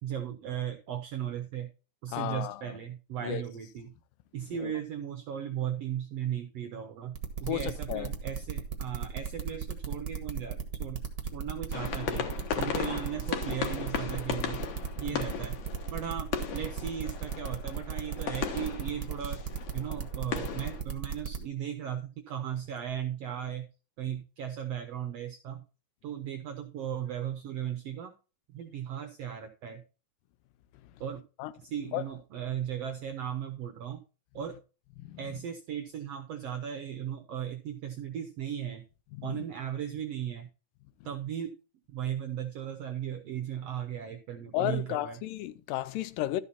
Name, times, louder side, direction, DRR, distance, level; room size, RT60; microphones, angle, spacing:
voice 1, 0.0-1.7 2.0-3.9 4.3-7.2 7.4-11.0 11.3-12.3 12.6-14.6 15.0-15.6 15.9-19.4 19.7-23.7 24.0-25.6 26.0-28.1 28.5-29.8 31.0-31.2 31.6-34.0 34.3-34.5 35.2-38.8 39.2-40.5 41.0-41.5 41.9-45.2, right 9 dB, 80° right, 1.4 m, -36 dB
voice 2, 2.1-2.6 3.2-3.4 4.6-4.7 7.5-8.1 31.4-31.5 31.9-32.0 35.0-35.2 39.1-39.4 44.5-46.4, left 14 dB, 90° left, 2.4 m, -33 dB
sound 1, 7.1-21.4, right 7 dB, 55° right, 1.0 m, -35 dB
sound 2, 11.7-20.8, left 8 dB, 65° left, 2.3 m, -36 dB
12.5 x 5.6 x 4.2 m
omnidirectional pair, 3.8 m